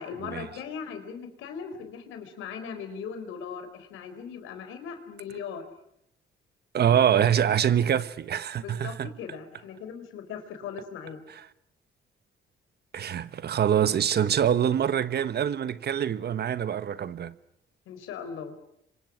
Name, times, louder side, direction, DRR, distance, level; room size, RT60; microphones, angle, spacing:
voice 1, 0.0-5.7 8.6-11.2 17.9-18.5, left 6 dB, 90° left, 4.2 m, -39 dB
voice 2, 6.7-9.1 12.9-17.4, right 9 dB, 55° right, 1.2 m, -25 dB
29.0 x 25.0 x 6.3 m
cardioid pair, 90°, 20 cm